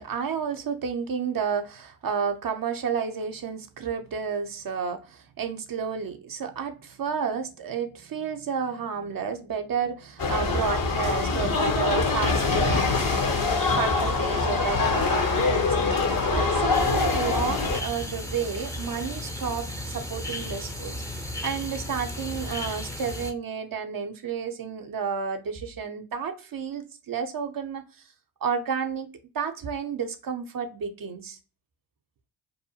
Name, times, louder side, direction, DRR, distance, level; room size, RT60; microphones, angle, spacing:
voice 1, 0.0-12.9 13.7-28.1 28.4-31.4, right 6 dB, 45° right, 0.6 m, -31 dB
sound 1, 10.2-17.8, left 4 dB, 45° left, 0.8 m, -24 dB
sound 2, 16.7-23.3, left 1 dB, 5° left, 0.6 m, -35 dB
2.7 x 2.1 x 2.6 m
supercardioid pair, 45°, 49 cm